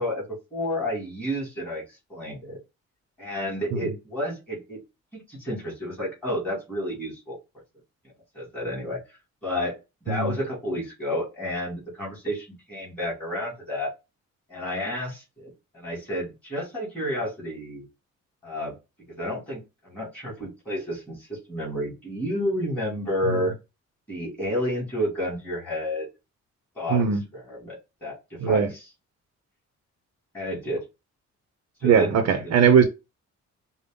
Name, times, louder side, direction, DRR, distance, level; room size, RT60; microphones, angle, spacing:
voice 1, 0.0-1.8 2.1-2.6 3.2-4.8 5.1-7.4 8.3-9.0 9.4-13.9 14.5-17.8 18.4-18.8 19.1-23.5 24.1-26.1 26.8-27.1 27.3-28.7 30.3-30.8 31.8-32.1 32.4-32.6, equal, 5° left, 2.8 m, -30 dB
voice 2, 26.9-27.2 28.4-28.7 31.8-32.8, right 7 dB, 60° right, 0.6 m, -20 dB
5.1 x 2.1 x 3.7 m
wide cardioid pair, 175°, 29 cm